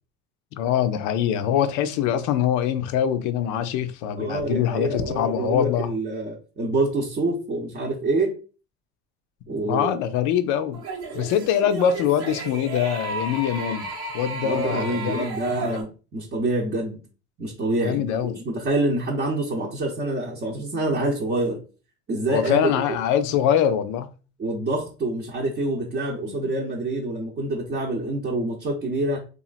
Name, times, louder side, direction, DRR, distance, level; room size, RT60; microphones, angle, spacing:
voice 1, 0.5-5.9 9.5-10.8 11.1-15.3 15.7-15.8 17.8-18.4 20.7-20.9 22.3-24.1, left 9 dB, 65° left, 0.5 m, -24 dB
voice 2, 4.2-8.4 9.5-10.0 14.4-17.0 17.4-21.6 22.1-22.7 24.4-29.2, right 2 dB, 30° right, 0.7 m, -26 dB
sound 1, 10.7-15.8, right 2 dB, 75° right, 1.1 m, -33 dB
2.9 x 2.4 x 2.4 m
supercardioid pair, 90°, 33 cm